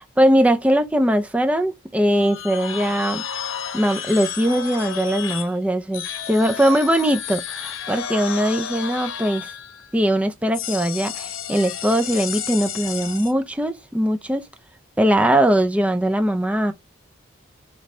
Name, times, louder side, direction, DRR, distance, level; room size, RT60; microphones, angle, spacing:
voice 1, 0.2-3.2 3.7-9.5 9.9-14.5 15.0-16.7, right 1 dB, 5° right, 0.4 m, -20 dB
sound 1, 2.1-5.5 5.9-9.9 10.5-13.3, left 8 dB, 80° left, 0.7 m, -32 dB
3.9 x 3.2 x 3.2 m
head